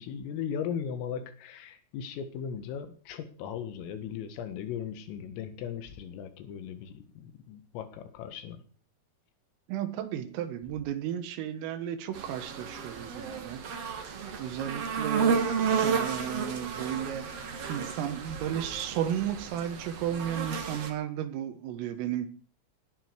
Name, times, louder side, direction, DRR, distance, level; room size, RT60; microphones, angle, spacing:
voice 1, 0.0-8.6, left 8 dB, 85° left, 4.3 m, -37 dB
voice 2, 9.7-13.8 14.1-15.5 15.8-22.3, right 10 dB, 90° right, 4.0 m, -34 dB
sound 1, 12.1-20.9, right 6 dB, 45° right, 2.2 m, -32 dB
18.5 x 12.5 x 4.7 m
omnidirectional pair, 5.7 m